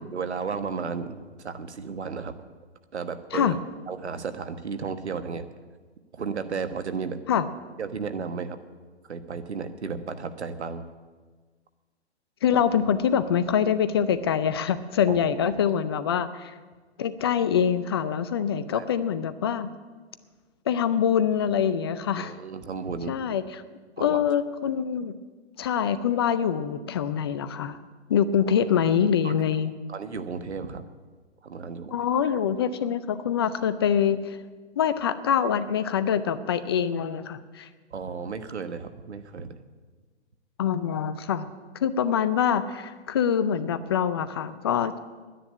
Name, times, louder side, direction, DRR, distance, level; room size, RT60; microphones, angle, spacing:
voice 1, 0.1-2.3 2.9-3.5 3.9-5.5 6.1-7.2 7.8-8.6 9.1-10.8 15.1-15.2 18.7-18.8 22.2-23.2 24.0-24.2 29.2-29.3 29.9-30.8 31.4-32.0 37.9-39.5, right 5 dB, 75° right, 10 dB, 1.4 m, -33 dB
voice 2, 12.4-16.5 17.0-19.7 20.7-22.4 23.1-23.6 24.0-25.1 25.6-27.8 28.1-29.7 31.9-34.4 34.8-37.7 40.6-41.5 41.8-45.0, left 8 dB, 25° left, 13 dB, 0.5 m, -25 dB
10.5 x 10.0 x 9.9 m, 1.4 s
figure-of-eight pair, 140°, 34 cm